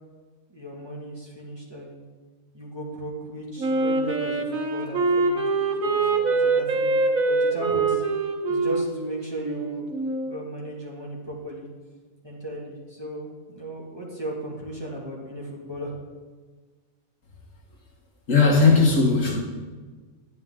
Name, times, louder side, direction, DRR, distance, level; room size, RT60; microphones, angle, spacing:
voice 1, 0.5-2.0 2.5-6.9 7.2-8.0 8.5-9.9 10.2-11.7 12.2-16.0, right 1 dB, 20° right, -4 dB, 2.1 m, -36 dB
Wind instrument woodwind instrument, 3.6-10.4, right 3 dB, 80° right, 1.5 m, -24 dB
voice 2, 18.3-19.4, left 4 dB, 70° left, 0 dB, 1.8 m, -17 dB
10.5 x 10.5 x 3.7 m, 1.4 s
omnidirectional pair, 1.4 m